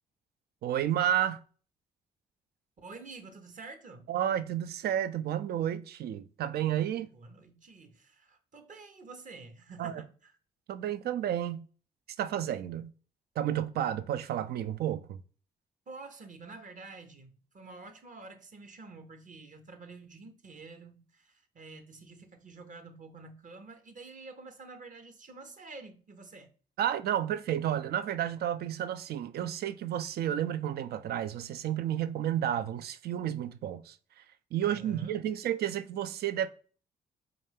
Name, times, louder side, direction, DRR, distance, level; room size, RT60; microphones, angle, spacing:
voice 1, 0.6-1.4 4.1-7.1 9.8-10.0 10.7-11.6 12.2-12.9 13.4-15.2 26.8-34.0 34.5-36.5, right 10 dB, 60° right, 0.4 m, -31 dB
voice 2, 2.8-4.1 7.0-10.4 15.9-26.5 34.6-35.2, right 3 dB, 45° right, 0.9 m, -48 dB
4.5 x 2.5 x 3.3 m
hypercardioid pair, 45°, 18 cm